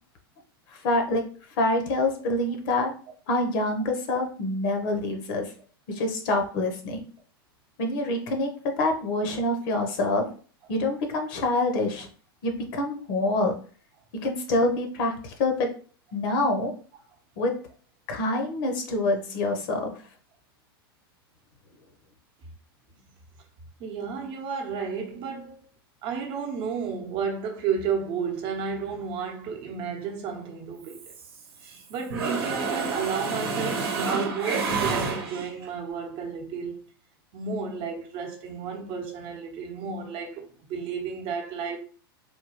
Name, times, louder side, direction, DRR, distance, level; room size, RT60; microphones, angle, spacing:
voice 1, 0.7-1.2 1.6-2.9 3.3-5.5 5.9-7.0 7.8-8.5 8.8-10.2 10.7-12.1 12.4-13.6 14.2-15.7 16.1-16.7 17.4-17.5 18.1-19.9, left 2 dB, 55° left, 0.9 m, -26 dB
voice 2, 23.8-25.6 26.0-31.1 31.9-36.8 37.3-41.8, right 6 dB, 45° right, 0.8 m, -32 dB
Mechanisms, 30.9-31.8 32.1-35.7, right 4 dB, 75° right, 0.8 m, -29 dB
3.6 x 2.2 x 3.0 m
hypercardioid pair, 115°, 13 cm